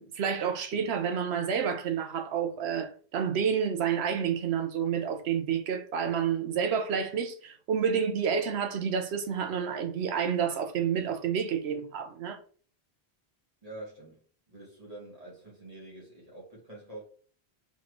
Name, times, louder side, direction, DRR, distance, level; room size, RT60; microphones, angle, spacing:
voice 1, 0.0-12.4, right 7 dB, 80° right, 0.9 m, -29 dB
voice 2, 13.6-14.2 14.5-17.0, right 2 dB, 35° right, 1.8 m, -46 dB
4.3 x 3.2 x 3.1 m
omnidirectional pair, 1.1 m